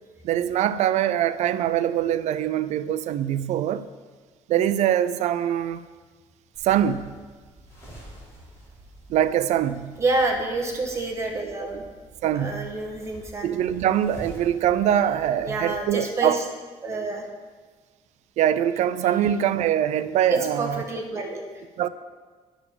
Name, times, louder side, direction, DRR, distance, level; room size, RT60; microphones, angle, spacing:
voice 1, 0.2-3.9 4.5-5.8 6.6-7.1 9.1-9.9 12.2-12.7 13.4-16.4 18.4-20.8 21.8-21.9, right 10 dB, 70° right, 0.5 m, -23 dB
sound 1, 6.5-15.8, equal, 20° left, 2.3 m, -47 dB
voice 2, 10.0-11.8 12.3-13.6 15.0-15.1 15.4-16.4 16.8-17.2 20.3-21.4, right 2 dB, 25° right, 1.4 m, -28 dB
11.0 x 5.0 x 6.8 m
cardioid pair, 180°, 12 cm